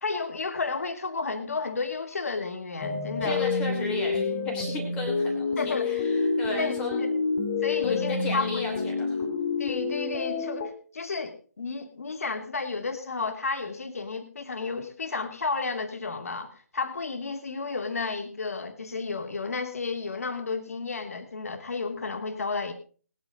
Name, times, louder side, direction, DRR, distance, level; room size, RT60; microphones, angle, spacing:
voice 1, 0.0-3.5 5.6-6.0 6.6-6.7 7.0-7.1 7.6-8.5 9.6-22.7, left 4 dB, 55° left, 5 dB, 2.8 m, -32 dB
sound 1, 2.8-10.7, left 4 dB, 25° left, 2.0 m, -28 dB
voice 2, 3.2-7.1 7.8-9.2, left 2 dB, 10° left, 1 dB, 2.9 m, -35 dB
20.0 x 9.2 x 3.9 m, 0.41 s
figure-of-eight pair, 150°, 10 cm